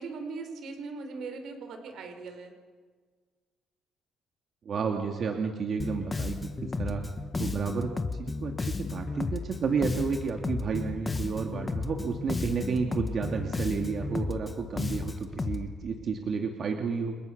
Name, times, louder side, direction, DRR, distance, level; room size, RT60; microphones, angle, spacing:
voice 1, 0.0-2.5, right 4 dB, 60° right, 6 dB, 4.8 m, -39 dB
voice 2, 4.6-7.0 7.4-17.2, right 5 dB, 40° right, 3 dB, 2.4 m, -31 dB
Bass guitar, 5.8-15.7, left 3 dB, 20° left, 1.7 m, -33 dB
29.5 x 29.5 x 6.7 m, 1.5 s
cardioid pair, 155°, 0 cm